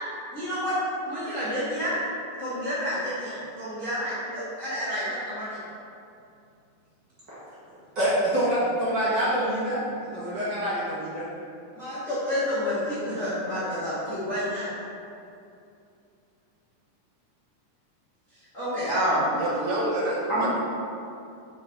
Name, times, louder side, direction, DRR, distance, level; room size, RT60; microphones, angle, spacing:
voice 1, 0.3-0.8 1.1-1.9 2.4-5.6 11.7-14.7 18.5-19.3 20.3-20.5, equal, 35° left, -11 dB, 1.3 m, -29 dB
voice 2, 7.9-9.8 10.1-11.2, right 1 dB, 45° right, -10 dB, 1.6 m, -25 dB
voice 3, 19.3-20.5, right 1 dB, 70° right, -5 dB, 2.0 m, -28 dB
5.6 x 5.1 x 4.5 m, 2.5 s
omnidirectional pair, 3.6 m